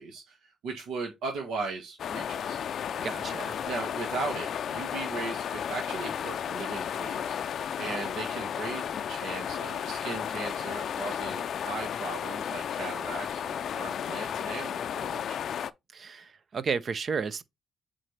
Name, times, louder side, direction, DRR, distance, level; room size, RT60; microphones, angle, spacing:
voice 1, 0.0-2.6 3.7-7.4 7.8-15.4, right 4 dB, 80° right, 1.8 m, -38 dB
sound 1, 2.0-15.7, left 8 dB, 65° left, 0.4 m, -33 dB
voice 2, 3.0-3.6 15.9-17.4, right 5 dB, 45° right, 0.6 m, -32 dB
7.6 x 3.9 x 3.3 m
cardioid pair, 90°, 0 cm